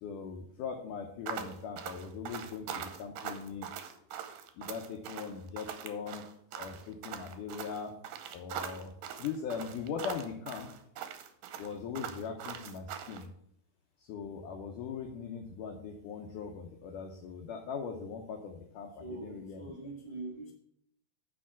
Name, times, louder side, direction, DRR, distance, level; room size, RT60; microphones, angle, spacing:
voice 1, 0.0-3.7 4.6-6.2 6.6-7.9 8.3-8.9 9.2-10.7 11.6-13.3 14.1-19.8, left 6 dB, 80° left, 3 dB, 1.8 m, -40 dB
sound 1, 1.3-13.2, right 8 dB, 80° right, 2.0 m, -42 dB
voice 2, 18.9-20.5, right 2 dB, 35° right, -4 dB, 0.9 m, -43 dB
7.4 x 4.8 x 7.2 m, 0.71 s
omnidirectional pair, 4.6 m